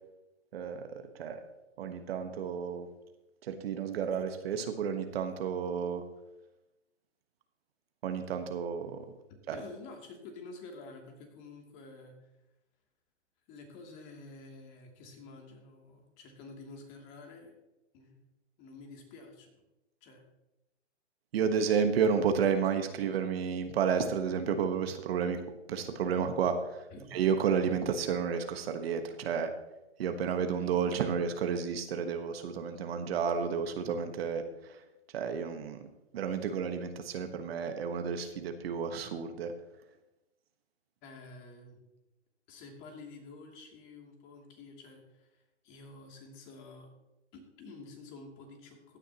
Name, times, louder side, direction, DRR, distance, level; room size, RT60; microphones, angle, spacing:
voice 1, 0.5-1.5 1.8-2.9 3.4-6.0 8.0-9.1 9.5-9.6 21.3-25.4 25.7-29.5 30.0-34.8 35.1-35.9 36.1-39.5, right 6 dB, 55° right, 7 dB, 1.4 m, -31 dB
voice 2, 9.5-12.3 13.5-17.5 17.9-18.2 18.6-19.6 20.0-20.2 23.0-23.1 26.9-27.1 41.0-41.8 42.5-46.9 47.3-49.0, left 3 dB, 35° left, 2 dB, 2.8 m, -50 dB
16.0 x 9.9 x 3.0 m, 0.96 s
hypercardioid pair, 125°, 35 cm